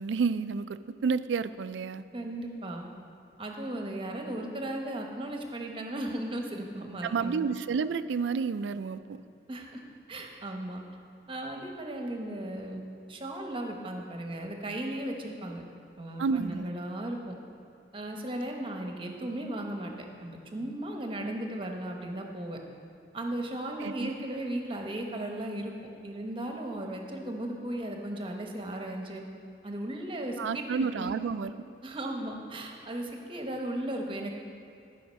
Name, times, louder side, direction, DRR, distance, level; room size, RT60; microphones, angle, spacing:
voice 1, 0.0-2.0 7.0-9.2 16.2-16.7 23.8-24.1 30.4-31.5, right 5 dB, 80° right, 13 dB, 0.4 m, -30 dB
voice 2, 2.1-2.8 3.4-7.4 9.5-9.8 10.1-10.8 11.3-12.8 13.1-15.6 16.0-17.3 17.9-19.9 20.2-22.6 23.1-25.7 26.0-29.2 29.6-31.1 31.8-34.3, right 1 dB, 30° right, 2 dB, 0.9 m, -36 dB
13.0 x 5.0 x 6.2 m, 2.5 s
head